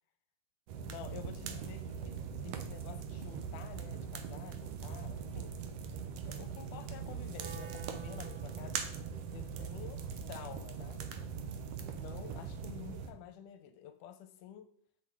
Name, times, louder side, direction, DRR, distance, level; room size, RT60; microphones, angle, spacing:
sound 1, 0.7-13.1, right 6 dB, 85° right, 1.4 m, -41 dB
voice 1, 0.9-5.5 6.3-8.8 9.3-10.0 10.3-11.0 11.9-14.7, left 10 dB, 80° left, 9 dB, 2.0 m, -50 dB
Wind instrument woodwind instrument, 7.3-13.4, right 6 dB, 65° right, 2.3 m, -54 dB
7.7 x 6.0 x 4.6 m, 0.64 s
omnidirectional pair, 3.8 m